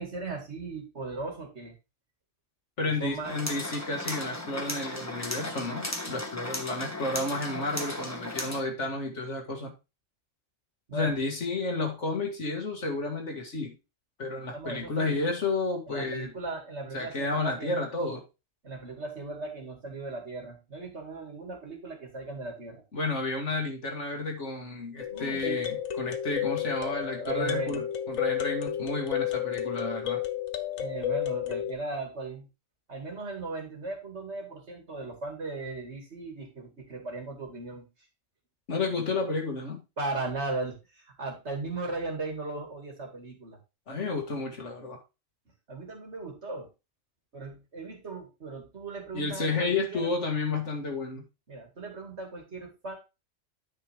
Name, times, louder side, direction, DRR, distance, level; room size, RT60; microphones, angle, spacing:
voice 1, 0.0-1.7 2.8-3.4 10.9-11.2 14.5-15.2 15.9-17.8 18.6-22.8 25.1-25.6 26.9-27.9 30.8-32.5 32.9-37.9 40.0-43.6 43.9-44.0 45.7-46.7 47.3-50.1 51.5-52.9, right 3 dB, 55° right, 2.6 m, -37 dB
voice 2, 2.8-9.7 10.9-13.8 14.2-16.3 16.9-18.2 22.9-30.2 38.7-39.8 43.9-45.0 49.1-51.2, left 3 dB, 65° left, 2.2 m, -31 dB
sound 1, 3.2-8.6, left 1 dB, 15° left, 1.4 m, -36 dB
sound 2, 25.0-31.7, left 11 dB, 85° left, 1.3 m, -32 dB
9.8 x 5.4 x 3.4 m
omnidirectional pair, 1.3 m